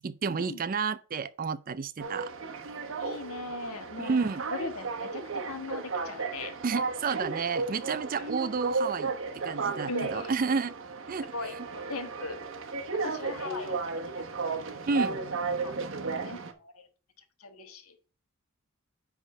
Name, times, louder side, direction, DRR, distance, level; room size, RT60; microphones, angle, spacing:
voice 1, 0.0-2.3 4.0-4.4 6.6-10.7 11.1-11.3 14.9-15.2 15.8-16.0, right 5 dB, 40° right, 0.4 m, -31 dB
sound 1, 2.0-16.5, right 4 dB, 60° right, 1.0 m, -34 dB
voice 2, 3.0-6.6 8.2-8.4 9.9-10.6 11.3-12.4 13.0-15.8 16.2-16.9 17.2-18.0, left 3 dB, 75° left, 1.4 m, -40 dB
10.0 x 3.6 x 5.3 m
head